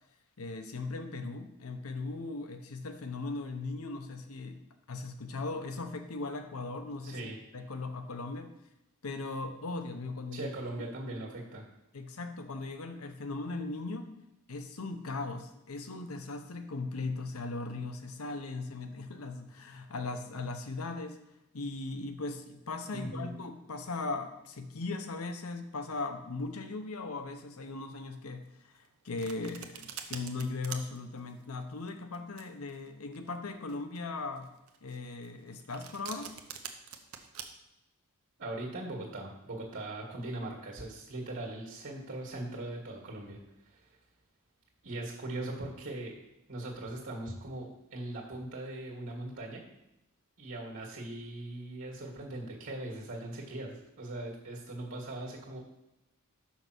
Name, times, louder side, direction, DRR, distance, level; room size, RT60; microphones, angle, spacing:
voice 1, 0.4-4.6 4.9-8.5 9.0-10.5 11.9-14.2 14.5-21.2 21.5-34.5 34.8-36.3, left 3 dB, 75° left, 7 dB, 0.8 m, -38 dB
voice 2, 7.0-7.4 10.3-11.6 22.9-23.4 38.4-43.4 43.6-43.8 44.8-46.2 46.5-49.6 50.4-55.7, right 1 dB, 60° right, -1 dB, 1.8 m, -40 dB
Domestic sounds home sounds, 28.7-37.4, right 8 dB, 80° right, 0.8 m, -45 dB
5.8 x 5.5 x 6.0 m, 0.92 s
head